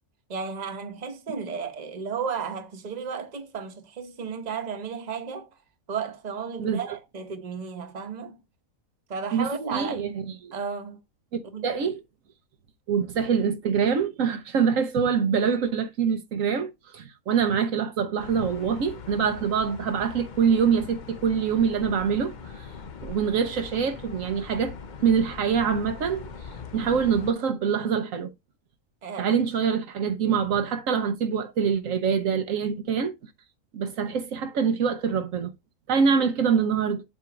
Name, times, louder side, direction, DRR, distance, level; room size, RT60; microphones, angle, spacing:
voice 1, 0.3-5.5 5.9-8.4 9.1-10.2 10.5-11.0 11.5-11.7 29.0-29.4, right 6 dB, 35° right, 1.0 m, -33 dB
voice 2, 9.3-10.1 10.4-10.5 11.3-12.0 12.9-22.7 23.0-26.2 26.7-28.3 29.2-33.1 33.7-35.5 35.9-37.0, right 6 dB, 70° right, 1.1 m, -25 dB
sound 1, 18.2-27.3, left 5 dB, 45° left, 0.6 m, -41 dB
7.6 x 2.7 x 5.9 m
omnidirectional pair, 1.4 m